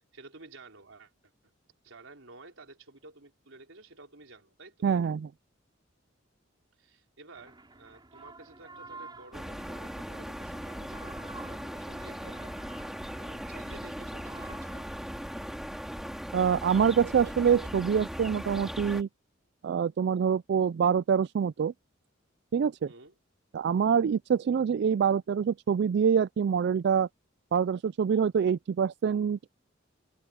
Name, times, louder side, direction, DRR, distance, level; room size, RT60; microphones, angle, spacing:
voice 1, 0.1-1.1 1.4-1.5 1.8-4.9 6.8-12.5 13.1-14.9 22.8-23.2, right 3 dB, 80° right, 3.9 m, -52 dB
voice 2, 4.8-5.3 16.3-19.1 19.6-21.7 22.5-22.9 23.5-27.1 27.5-29.5, right 7 dB, 55° right, 0.3 m, -25 dB
sound 1, 7.3-14.9, right 3 dB, 25° right, 3.5 m, -51 dB
sound 2, 9.3-19.0, equal, ahead, 3.1 m, -39 dB
open air
head